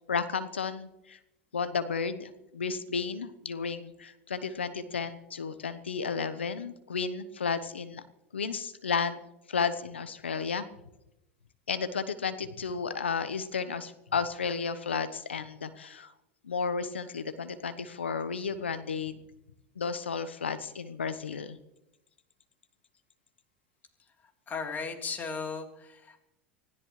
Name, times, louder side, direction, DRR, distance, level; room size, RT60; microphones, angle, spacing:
voice 1, 0.1-1.2 1.5-8.0 8.3-9.2 9.5-10.6 11.7-16.1 16.4-19.2 19.8-21.6, left 5 dB, 90° left, 12 dB, 1.0 m, -33 dB
voice 2, 24.5-26.2, left 5 dB, 30° left, 2 dB, 3.6 m, -36 dB
24.5 x 16.0 x 3.3 m, 0.91 s
hypercardioid pair, 85°, 6 cm